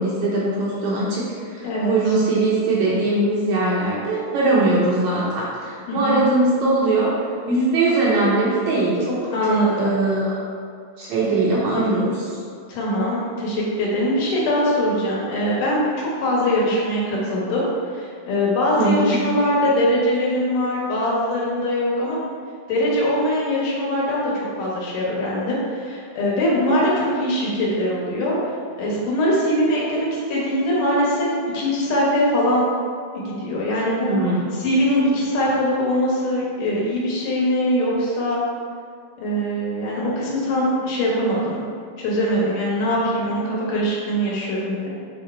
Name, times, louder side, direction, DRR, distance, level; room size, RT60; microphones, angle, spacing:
voice 1, 0.0-10.4 11.0-12.3 18.8-19.2 34.1-34.5, right 2 dB, 70° right, -6 dB, 1.9 m, -21 dB
voice 2, 5.9-6.2 9.3-9.9 11.7-11.8 12.7-22.2 22.7-28.4 28.8-32.7 33.1-34.2 34.6-38.4 39.2-41.6 42.0-44.9, equal, 70° left, -5 dB, 2.8 m, -22 dB
6.8 x 3.6 x 4.3 m, 2.2 s
omnidirectional pair, 4.0 m